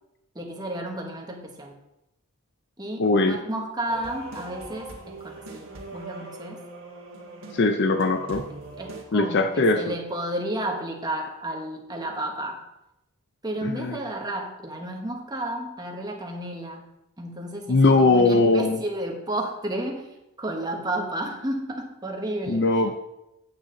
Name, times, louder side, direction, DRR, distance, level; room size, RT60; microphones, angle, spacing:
voice 1, 0.3-1.8 2.8-6.6 8.5-12.6 13.4-16.8 17.2-22.7, right 1 dB, 20° right, 1 dB, 1.2 m, -32 dB
voice 2, 3.0-3.4 7.5-8.4 9.1-9.8 13.6-13.9 17.7-18.8 22.5-23.0, left 3 dB, 50° left, 7 dB, 0.5 m, -20 dB
sound 1, 3.9-9.0, right 2 dB, 60° right, 1.7 m, -41 dB
8.8 x 7.5 x 3.9 m, 0.91 s
head